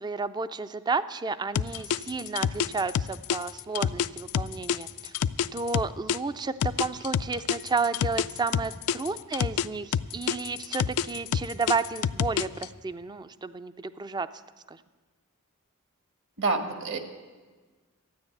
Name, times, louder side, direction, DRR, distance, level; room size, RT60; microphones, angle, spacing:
voice 1, 0.0-5.1 5.5-14.3 14.7-14.8, right 4 dB, 20° right, 13 dB, 0.4 m, -32 dB
sound 1, 1.5-6.2 6.6-9.7 9.9-12.6, left 8 dB, 75° left, 0.4 m, -27 dB
voice 2, 16.4-17.0, right 3 dB, 60° right, 5 dB, 1.5 m, -27 dB
13.0 x 9.6 x 7.9 m, 1.4 s
head